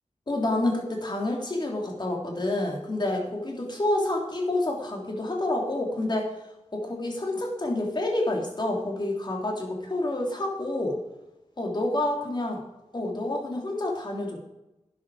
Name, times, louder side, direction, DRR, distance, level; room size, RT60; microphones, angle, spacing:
voice 1, 0.3-6.3 6.7-11.0 11.6-12.6 12.9-14.4, left 1 dB, 35° left, 0 dB, 3.3 m, -28 dB
12.0 x 10.5 x 5.0 m, 0.96 s
wide cardioid pair, 85°, 12 cm